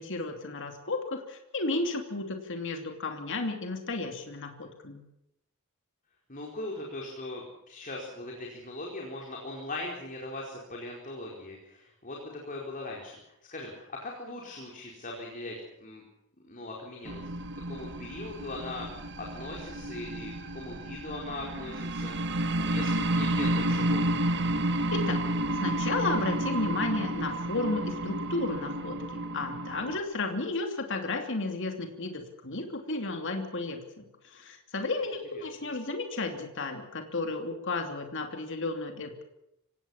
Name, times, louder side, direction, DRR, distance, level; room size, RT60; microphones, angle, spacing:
voice 1, 0.0-5.0 24.9-25.2 25.6-39.3, left 3 dB, 55° left, 4 dB, 2.8 m, -33 dB
voice 2, 6.3-16.0 16.5-17.3 17.7-24.1 35.3-35.4, left 2 dB, 35° left, -1 dB, 4.6 m, -40 dB
sound 1, 17.0-30.0, right 1 dB, 55° right, 1.7 m, -31 dB
25.5 x 18.0 x 7.3 m, 0.83 s
head